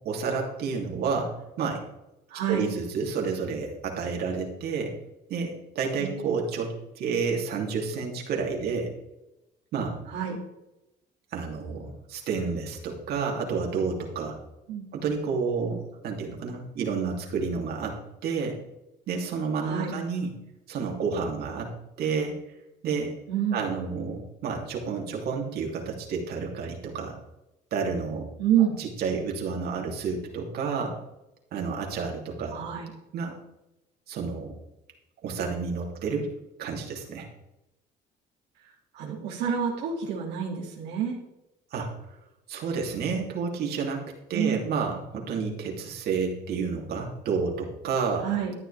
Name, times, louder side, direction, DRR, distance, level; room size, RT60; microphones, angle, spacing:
voice 1, 0.0-1.8 2.5-4.9 5.3-8.9 9.7-10.0 11.3-14.4 14.9-18.6 19.1-20.3 20.7-21.7 22.0-22.4 22.8-23.1 23.5-27.2 27.7-28.3 28.8-31.0 31.5-32.6 33.1-33.4 34.1-34.5 35.2-36.3 36.6-37.3 41.7-41.9 42.5-44.0 44.3-48.3, right 5 dB, 70° right, 0 dB, 3.3 m, -30 dB
voice 2, 2.3-2.7 6.0-6.2 10.1-10.4 14.7-14.9 19.6-19.9 23.3-23.6 28.4-28.8 32.5-32.9 38.9-41.2 44.3-44.6 48.2-48.5, right 8 dB, 90° right, -3 dB, 2.6 m, -28 dB
13.0 x 10.5 x 3.6 m, 0.92 s
cardioid pair, 110°, 17 cm